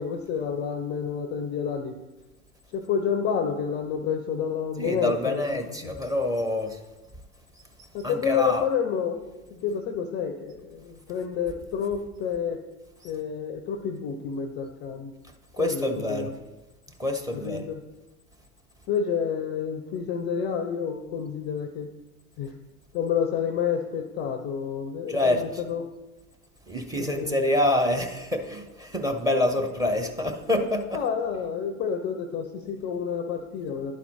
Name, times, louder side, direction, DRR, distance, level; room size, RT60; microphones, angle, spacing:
voice 1, 0.0-1.9 2.7-5.4 5.8-5.9 7.9-9.2 9.6-12.6 13.0-15.1 15.6-16.3 17.3-17.8 18.9-21.9 22.4-22.5 22.9-25.4 25.7-25.8 27.0-27.4 30.9-34.0, left 7 dB, 25° left, 6 dB, 0.4 m, -29 dB
voice 2, 4.8-6.8 8.0-8.6 15.6-16.3 17.0-17.7 25.1-25.6 26.7-31.0, left 1 dB, 10° right, 6 dB, 0.7 m, -26 dB
11.0 x 4.2 x 4.1 m, 1.1 s
figure-of-eight pair, 80°, 44 cm